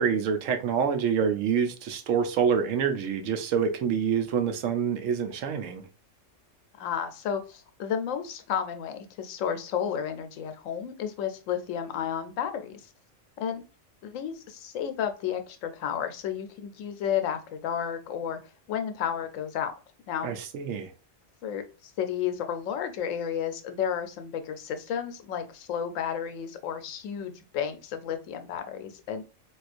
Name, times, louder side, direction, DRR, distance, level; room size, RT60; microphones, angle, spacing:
voice 1, 0.0-5.8 20.2-20.9, right 7 dB, 80° right, 1.0 m, -26 dB
voice 2, 6.8-12.9 13.4-13.6 14.0-18.4 18.7-19.7 20.1-20.3 21.4-21.6 22.0-29.2, left 8 dB, 80° left, 1.0 m, -32 dB
4.1 x 2.3 x 2.4 m
omnidirectional pair, 1.3 m